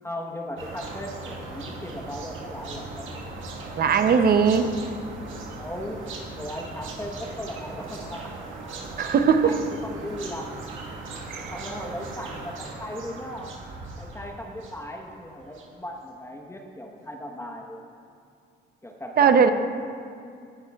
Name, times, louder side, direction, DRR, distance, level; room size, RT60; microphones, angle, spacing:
voice 1, 0.0-3.1 5.6-8.3 9.4-10.6 11.5-13.5 14.0-17.8 18.8-19.5, left 1 dB, 15° left, 1 dB, 1.1 m, -37 dB
sound 1, 0.6-15.7, right 2 dB, 80° right, 1.5 m, -39 dB
voice 2, 3.8-4.8 9.0-9.6 11.3-11.5 19.2-19.5, right 6 dB, 50° right, 9 dB, 0.7 m, -19 dB
17.5 x 10.5 x 2.4 m, 2.4 s
cardioid pair, 90°, 20 cm